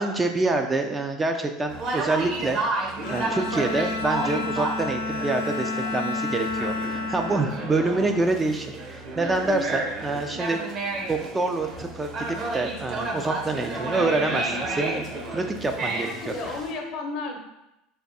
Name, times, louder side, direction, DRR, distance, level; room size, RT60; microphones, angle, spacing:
voice 1, 0.0-10.6 11.1-12.3 12.5-16.1, right 2 dB, 20° right, 4 dB, 0.4 m, -26 dB
Conversation, 1.7-16.7, right 2 dB, 45° right, 0.9 m, -32 dB
Bowed string instrument, 3.0-8.5, left 3 dB, 85° left, 0.5 m, -31 dB
voice 2, 9.2-9.5 15.9-17.4, left 3 dB, 55° left, 2 dB, 0.8 m, -34 dB
3.4 x 2.5 x 4.0 m, 0.89 s
supercardioid pair, 100°, 0 cm